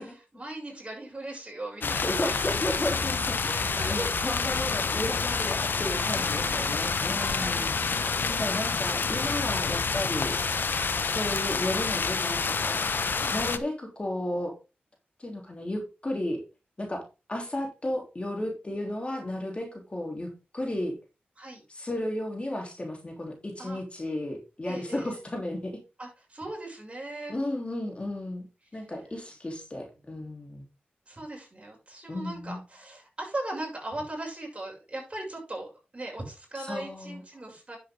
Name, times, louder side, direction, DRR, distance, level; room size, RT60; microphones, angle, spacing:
voice 1, 0.1-2.7 3.4-4.1 6.1-7.7 13.1-13.4 21.4-21.6 23.6-23.8 24.7-25.2 26.0-27.3 28.7-28.8 31.1-37.8, right 2 dB, 30° right, -1 dB, 6.6 m, -39 dB
sound 1, 1.8-13.6, left 5 dB, 65° left, 0.9 m, -28 dB
voice 2, 1.8-10.4 11.0-12.9 13.3-14.6 15.2-16.4 16.8-17.0 17.3-21.0 21.7-25.8 27.3-28.5 28.7-30.7 32.1-32.6 36.7-37.2, left 1 dB, 30° left, 2 dB, 3.3 m, -33 dB
10.0 x 7.9 x 3.7 m, 0.29 s
cardioid pair, 60°, 4 cm